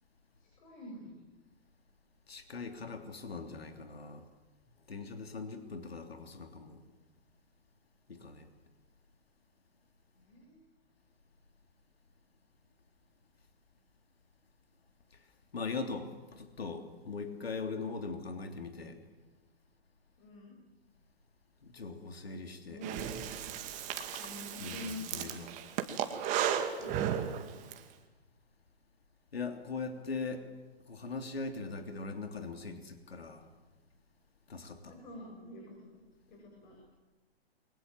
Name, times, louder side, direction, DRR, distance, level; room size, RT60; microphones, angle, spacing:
voice 1, 0.4-1.2 10.2-10.7 20.2-20.5 22.6-22.9 24.2-25.5 26.8-27.2 34.9-36.0 36.3-36.8, left 2 dB, 50° left, 0 dB, 7.9 m, -47 dB
voice 2, 2.3-4.2 4.9-6.8 8.1-8.5 15.5-19.0 21.6-22.8 24.0-24.1 24.6-25.5 29.3-30.5 30.9-33.4 34.5-35.0, left 4 dB, 70° left, 6 dB, 3.2 m, -40 dB
Breathing, 22.8-27.8, right 9 dB, 25° right, 2.2 m, -35 dB
29.0 x 23.5 x 7.7 m, 1.2 s
figure-of-eight pair, 125°, 31 cm